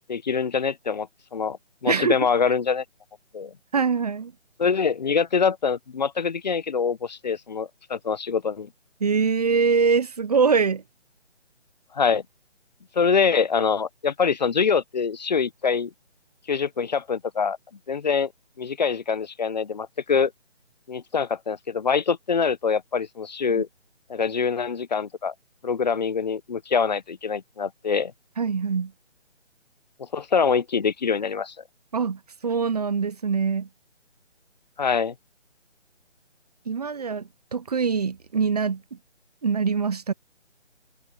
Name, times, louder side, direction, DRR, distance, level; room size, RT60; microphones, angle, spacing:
voice 1, 0.1-1.6 1.8-2.8 3.3-3.5 4.6-8.7 11.9-12.2 12.9-15.9 16.5-17.6 17.9-18.3 18.6-20.3 20.9-23.7 24.1-25.3 25.6-28.1 30.1-31.5 34.8-35.1, left 6 dB, 35° left, 0.9 m, -24 dB
voice 2, 1.9-2.2 3.7-4.3 9.0-10.8 23.6-23.7 28.4-28.9 31.9-33.7 36.7-39.0 39.4-40.1, right 5 dB, 35° right, 1.0 m, -23 dB
figure-of-eight pair, 155°, 35 cm